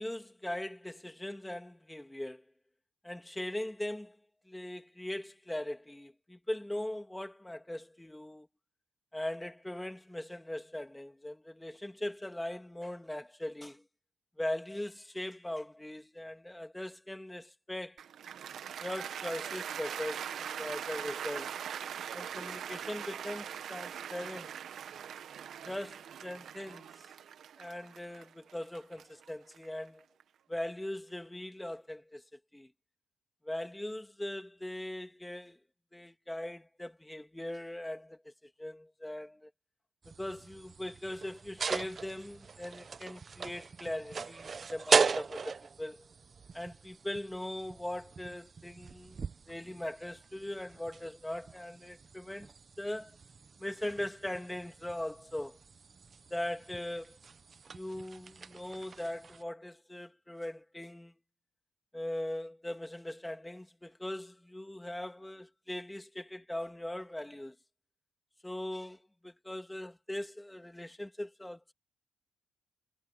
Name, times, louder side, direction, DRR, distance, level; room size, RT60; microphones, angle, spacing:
voice 1, 0.0-2.4 3.0-4.2 4.5-8.5 9.1-13.8 14.4-18.0 18.8-21.6 22.1-24.5 25.6-27.1 27.6-30.0 30.5-32.2 32.5-32.7 33.4-35.6 35.9-38.3 38.6-39.5 40.2-46.1 46.5-49.2 49.5-53.1 53.6-55.6 56.3-57.2 57.7-61.1 61.9-67.5 68.4-71.7, left 1 dB, 10° left, 2.7 m, -40 dB
Cheering / Applause, 18.0-30.2, right 9 dB, 65° right, 1.8 m, -42 dB
sound 1, 40.0-59.4, right 5 dB, 40° right, 1.1 m, -38 dB
cardioid pair, 90°, 0 cm